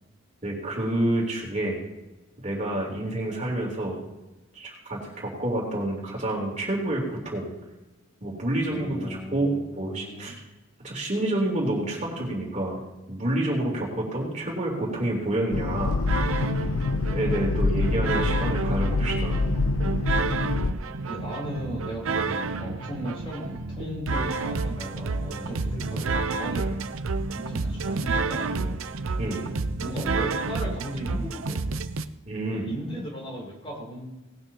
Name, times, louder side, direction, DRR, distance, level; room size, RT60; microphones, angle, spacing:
voice 1, 0.4-1.8 2.4-4.0 4.5-7.5 8.2-10.3 10.8-12.8 13.1-16.0 17.1-19.4 29.2-29.5 32.2-32.7, right 1 dB, 35° right, -2 dB, 3.4 m, -28 dB
voice 2, 8.7-10.3 17.2-17.5 21.1-26.8 27.4-28.8 29.8-31.8 32.5-34.1, equal, 25° left, -3 dB, 3.8 m, -36 dB
sound 1, 15.5-20.7, left 3 dB, 80° left, 0.6 m, -26 dB
sound 2, 16.1-32.0, right 3 dB, 75° right, 0.6 m, -30 dB
19.0 x 12.5 x 2.9 m, 0.99 s
head